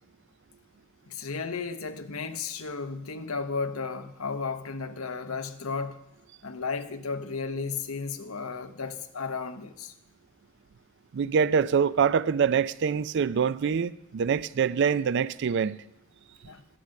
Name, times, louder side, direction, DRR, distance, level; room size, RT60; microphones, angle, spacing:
voice 1, 1.1-6.0 6.4-9.9 16.4-16.6, left 4 dB, 85° left, 0.9 m, -34 dB
voice 2, 11.1-15.8, right 6 dB, 55° right, 0.4 m, -25 dB
11.5 x 8.1 x 6.4 m
head